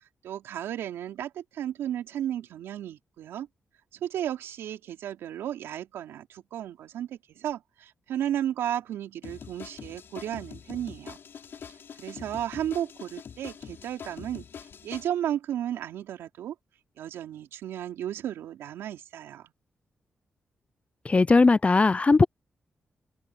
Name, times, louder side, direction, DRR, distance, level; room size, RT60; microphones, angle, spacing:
voice 1, 0.2-3.5 4.0-11.2 12.0-14.5 14.8-16.5 17.0-19.5, right 11 dB, 85° right, 3.8 m, -34 dB
sound 1, 9.2-15.1, left 7 dB, 70° left, 6.1 m, -44 dB
voice 2, 21.1-22.3, left 3 dB, 30° left, 0.4 m, -19 dB
open air
supercardioid pair, 45°, 4 cm